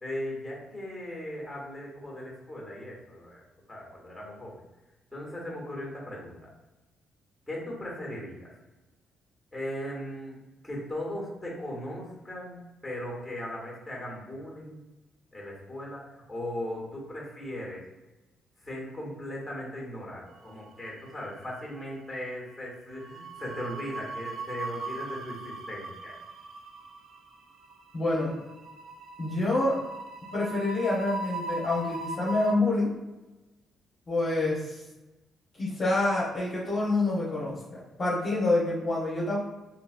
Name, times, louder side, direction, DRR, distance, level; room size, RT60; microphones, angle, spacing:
voice 1, 0.0-3.4 3.7-4.6 5.1-6.5 7.5-8.5 9.5-14.8 15.3-17.8 18.6-26.2, left 1 dB, 5° left, -4 dB, 1.4 m, -38 dB
sound 1, 20.5-21.3 21.5-21.8 23.0-32.5, right 3 dB, 65° right, 0.3 m, -39 dB
voice 2, 27.9-28.3 29.2-29.8 30.3-32.9 34.1-34.8 35.5-39.4, left 2 dB, 30° left, -7 dB, 1.0 m, -27 dB
2.9 x 2.8 x 2.5 m, 1.1 s
cardioid pair, 90°, 0 cm